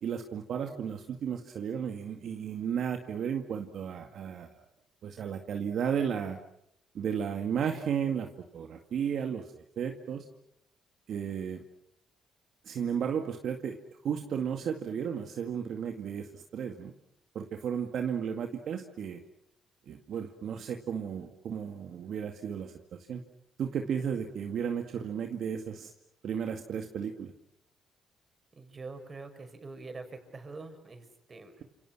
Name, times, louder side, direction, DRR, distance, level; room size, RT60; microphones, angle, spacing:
voice 1, 0.0-4.5 5.0-6.4 6.9-10.3 11.1-11.6 12.6-13.8 14.0-16.9 17.3-19.2 19.9-23.2 23.6-25.9 26.2-27.3, right 7 dB, 65° right, 4 dB, 2.1 m, -34 dB
voice 2, 28.5-31.6, right 3 dB, 35° right, 7 dB, 6.0 m, -45 dB
29.5 x 28.0 x 6.2 m, 0.75 s
cardioid pair, 90°, 0 cm